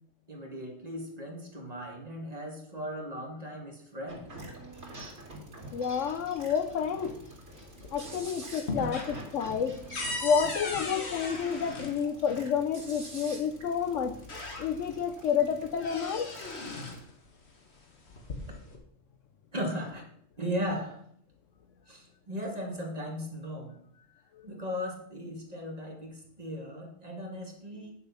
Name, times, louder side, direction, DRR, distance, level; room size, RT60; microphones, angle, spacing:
voice 1, 0.3-4.3 8.7-8.9 19.5-20.0 20.4-21.0 21.9-23.8 24.4-27.9, equal, 30° right, 1 dB, 2.0 m, -37 dB
sound 1, 4.1-17.0, right 1 dB, 60° right, 3.0 m, -47 dB
voice 2, 5.7-7.2 7.9-9.8 10.2-14.1 14.6-16.3, left 7 dB, 75° left, 11 dB, 1.1 m, -29 dB
sound 2, 7.5-8.2 8.5-12.5 13.6-13.7 14.1-15.0 15.4-17.1 18.0-18.8, left 2 dB, 60° left, 1.8 m, -38 dB
9.4 x 6.9 x 5.6 m, 0.65 s
omnidirectional pair, 1.3 m